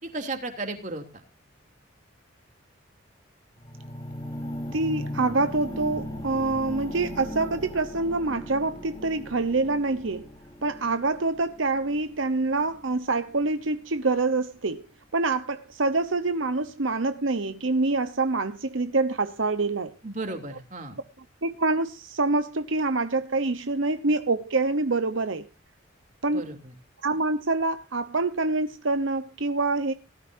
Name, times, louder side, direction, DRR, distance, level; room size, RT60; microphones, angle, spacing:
voice 1, 0.0-1.0 20.0-21.0 26.3-26.7, right 2 dB, 40° right, 3.0 m, -34 dB
sound 1, 3.6-13.7 14.3-14.4, equal, 20° left, 2.5 m, -38 dB
voice 2, 4.7-10.3 10.6-14.8 15.1-19.9 21.4-25.5 26.2-26.5 27.0-29.9, right 3 dB, 75° right, 0.9 m, -26 dB
19.0 x 13.0 x 2.7 m
head